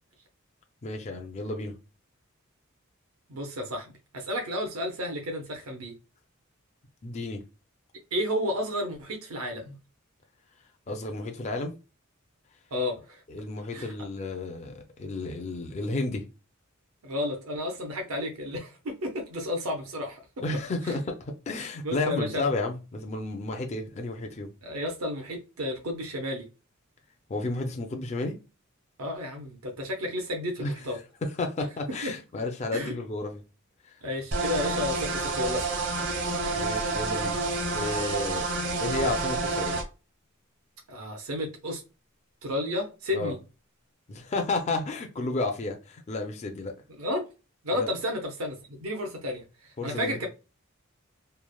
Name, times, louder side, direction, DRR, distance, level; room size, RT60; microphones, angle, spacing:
voice 1, 0.8-1.7 7.0-7.4 10.9-11.7 13.3-16.2 20.4-24.5 27.3-28.4 30.6-30.7 31.4-33.4 33.9-34.0 34.6-34.7 36.5-37.4 37.7-38.4 38.8-39.8 43.1-43.3 44.1-46.7 47.7-47.9 49.8-50.2, left 2 dB, 30° left, 0.4 m, -32 dB
voice 2, 3.3-5.9 8.1-9.7 12.7-13.2 13.7-13.9 17.0-20.2 20.8-21.0 21.8-22.5 24.6-26.5 29.0-31.0 31.9-32.1 32.7-32.9 34.0-35.7 40.9-41.8 42.4-43.4 46.9-47.3 47.6-50.3, left 1 dB, 85° right, 0.6 m, -32 dB
sound 1, 34.3-39.8, right 3 dB, 55° right, 0.8 m, -29 dB
3.1 x 2.0 x 2.2 m
head